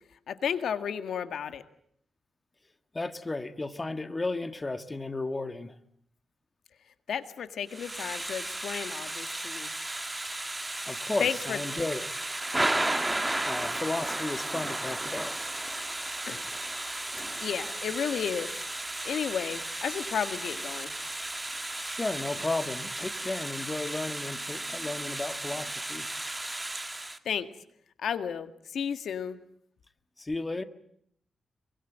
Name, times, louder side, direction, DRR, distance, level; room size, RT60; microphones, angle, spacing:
voice 1, 0.3-1.6 7.1-9.7 11.2-11.6 16.3-16.4 17.4-18.5 19.0-20.9 27.3-27.5 28.0-29.4, left 8 dB, 85° left, 10 dB, 1.8 m, -32 dB
voice 2, 2.9-5.8 10.8-12.1 13.4-15.4 21.8-26.1 30.2-30.6, left 2 dB, 20° left, 10 dB, 1.7 m, -34 dB
Thunder / Rain, 7.7-27.2, right 1 dB, 15° right, 1.9 m, -34 dB
25.5 x 24.0 x 9.1 m, 0.67 s
wide cardioid pair, 115°, 0 cm